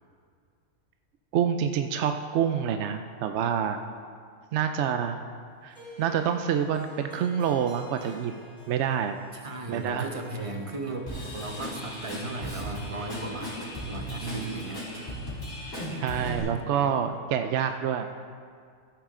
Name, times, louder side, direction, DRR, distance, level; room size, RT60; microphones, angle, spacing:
voice 1, 1.3-3.8 4.5-5.2 5.6-8.4 8.7-9.2 9.7-10.1 14.2-14.6 15.9-18.1, right 8 dB, 65° right, 7 dB, 0.8 m, -27 dB
Harp, 5.7-17.0, equal, 5° right, 3.3 m, -52 dB
voice 2, 9.3-14.8 16.1-16.9, right 2 dB, 30° right, 3 dB, 0.9 m, -36 dB
Drum kit / Drum, 11.1-16.4, equal, 50° left, 3.7 m, -37 dB
13.5 x 9.6 x 3.7 m, 2.2 s
omnidirectional pair, 1.4 m